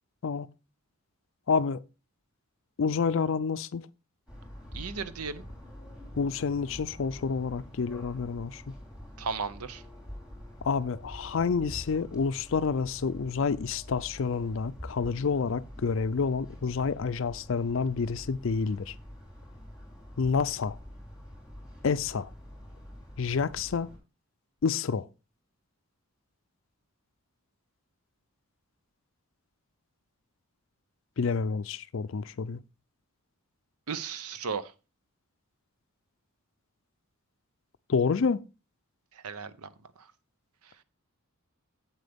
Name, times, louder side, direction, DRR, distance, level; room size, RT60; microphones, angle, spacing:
voice 1, 1.5-1.8 2.8-3.9 6.1-8.6 10.6-19.0 20.2-20.8 21.8-22.3 23.2-23.9 24.6-25.1 31.2-32.6 37.9-38.4, left 5 dB, 60° left, 0.4 m, -28 dB
sound 1, 4.3-24.0, equal, 5° right, 3.5 m, -46 dB
voice 2, 4.7-5.4 9.2-9.8 33.9-34.7 39.2-39.7, right 5 dB, 90° right, 0.7 m, -35 dB
8.2 x 7.8 x 3.5 m
head